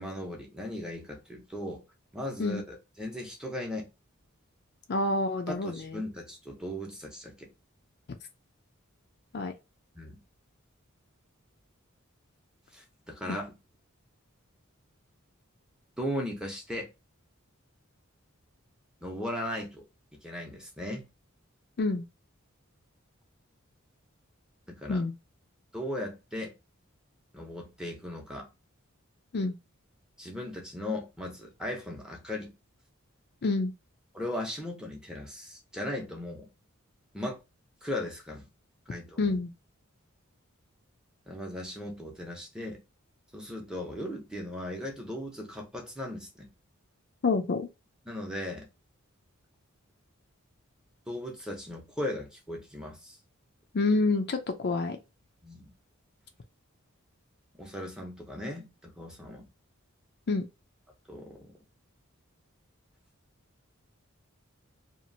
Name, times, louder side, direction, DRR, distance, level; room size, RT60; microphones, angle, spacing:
voice 1, 0.0-1.8 2.1-3.9 5.5-7.5 9.9-10.2 12.7-13.6 16.0-16.9 19.0-19.8 20.2-21.1 24.7-25.0 25.7-26.5 27.3-28.5 30.2-32.5 34.1-36.5 37.1-37.4 37.8-38.5 38.9-39.4 41.3-42.8 43.3-46.5 48.1-48.7 51.1-53.2 55.4-55.7 57.6-59.5 61.1-61.5, left 1 dB, 5° right, 0.8 m, -37 dB
voice 2, 4.9-6.0 9.3-9.5 13.3-13.4 21.8-22.0 24.9-25.1 29.3-29.5 33.4-33.7 39.2-39.5 47.2-47.7 53.7-55.0 60.3-60.5, left 3 dB, 50° left, 0.5 m, -27 dB
2.9 x 2.5 x 2.6 m
head